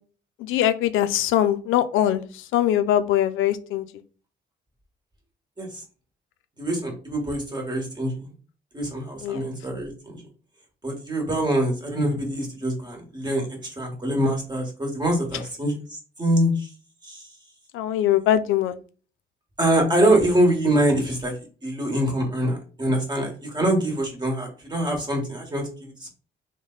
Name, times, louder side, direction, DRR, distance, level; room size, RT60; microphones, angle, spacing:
voice 1, 0.4-3.9 9.2-9.4 17.7-18.8, left 11 dB, 85° left, 10 dB, 0.4 m, -22 dB
voice 2, 6.6-8.3 8.7-10.2 10.8-16.7 17.0-17.3 19.6-26.1, right 1 dB, 20° right, 1 dB, 1.4 m, -24 dB
3.2 x 2.2 x 3.8 m, 0.37 s
cardioid pair, 90°, 20 cm